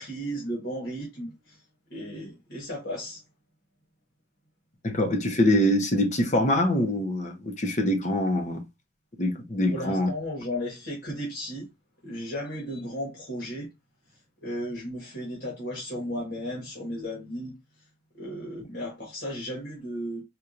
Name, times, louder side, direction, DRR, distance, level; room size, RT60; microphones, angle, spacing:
voice 1, 0.0-1.6 1.9-3.2 9.7-11.7 12.0-13.7 14.4-17.5 18.1-20.2, equal, 60° left, 1.4 m, -35 dB
voice 2, 4.8-8.6 9.2-10.1, left 1 dB, 40° left, 0.8 m, -24 dB
4.4 x 2.5 x 2.6 m
head